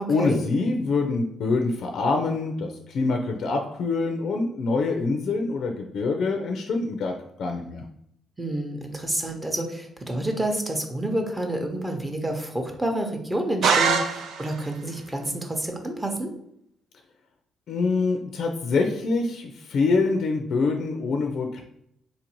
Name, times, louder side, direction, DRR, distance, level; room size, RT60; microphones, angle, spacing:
voice 1, 0.1-7.1 7.4-7.8 17.7-21.6, left 3 dB, 65° left, 3 dB, 0.4 m, -25 dB
voice 2, 8.4-16.3, right 1 dB, 15° right, 3 dB, 0.7 m, -29 dB
sound 1, 13.6-14.7, right 6 dB, 80° right, 0.4 m, -23 dB
3.9 x 2.6 x 2.9 m, 0.74 s
cardioid pair, 90°, 0 cm